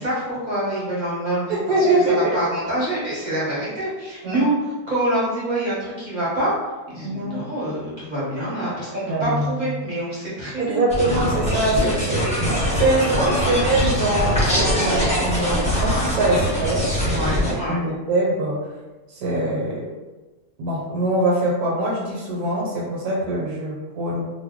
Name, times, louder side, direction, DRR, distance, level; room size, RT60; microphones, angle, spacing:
voice 1, 0.0-1.6 1.9-4.5 4.9-6.5 6.9-10.8 17.1-17.8, right 1 dB, 35° right, -8 dB, 0.8 m, -26 dB
voice 2, 1.5-2.2 4.2-4.4 7.0-7.4 9.1-9.9 10.6-17.3 17.7-18.6 19.1-19.9 20.6-24.3, right 1 dB, 75° right, -3 dB, 1.2 m, -23 dB
sound 1, 10.9-17.5, equal, 5° left, 0.7 m, -22 dB
2.6 x 2.1 x 3.5 m, 1.2 s
omnidirectional pair, 1.7 m